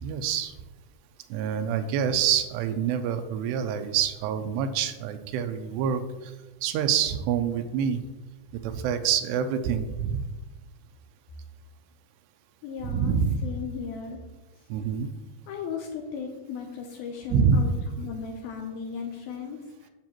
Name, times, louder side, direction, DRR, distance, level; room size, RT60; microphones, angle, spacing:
voice 1, 0.0-0.5 1.3-6.3 6.6-8.0 8.6-10.2 12.8-13.4 14.7-15.1 17.3-17.6, right 7 dB, 85° right, 9 dB, 2.6 m, -26 dB
voice 2, 12.6-14.2 15.5-19.6, left 6 dB, 80° left, 2 dB, 2.3 m, -36 dB
9.5 x 7.5 x 3.0 m, 1.1 s
omnidirectional pair, 4.9 m